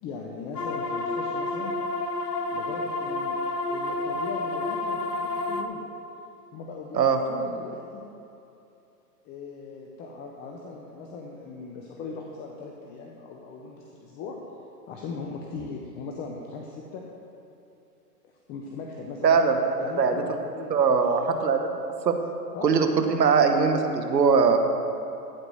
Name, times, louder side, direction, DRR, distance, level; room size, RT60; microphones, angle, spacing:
voice 1, 0.0-1.9 2.5-5.8 6.5-8.0 9.2-14.4 14.9-17.0 18.2-19.4 19.7-21.1 22.5-22.8, left 4 dB, 20° left, 0 dB, 0.6 m, -39 dB
sound 1, 0.6-5.6, left 2 dB, 70° left, 1.1 m, -30 dB
voice 2, 19.2-19.6 20.0-20.1 20.7-21.6 22.0-22.1 22.6-24.6, right 5 dB, 90° right, 6 dB, 1.2 m, -21 dB
14.0 x 4.9 x 6.3 m, 2.7 s
hypercardioid pair, 125°, 48 cm